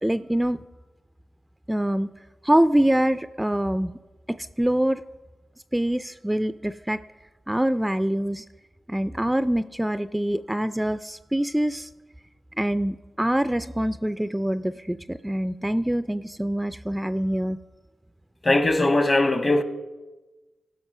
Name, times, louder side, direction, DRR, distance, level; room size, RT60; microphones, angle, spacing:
voice 1, 0.0-0.6 1.7-2.1 2.4-3.9 4.3-5.0 5.7-7.0 7.5-8.5 8.9-11.9 12.6-17.6, right 1 dB, 10° right, 0.3 m, -24 dB
voice 2, 18.4-19.6, left 2 dB, 40° left, 1.1 m, -20 dB
15.5 x 6.0 x 5.5 m
cardioid pair, 55°, 0 cm